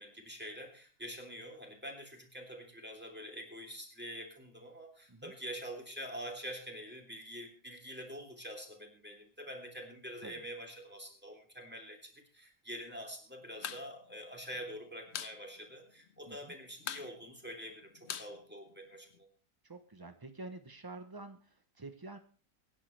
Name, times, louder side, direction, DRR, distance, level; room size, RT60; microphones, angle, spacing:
voice 1, 0.0-19.3, equal, 5° right, 2 dB, 3.1 m, -46 dB
sound 1, 13.5-13.9 14.1-14.2 14.5-15.4 15.7-15.8 16.1-16.5 16.8-19.2, left 8 dB, 55° left, 0.9 m, -42 dB
voice 2, 19.6-22.2, right 2 dB, 35° right, 8 dB, 0.3 m, -48 dB
24.5 x 10.0 x 3.3 m, 0.40 s
omnidirectional pair, 1.7 m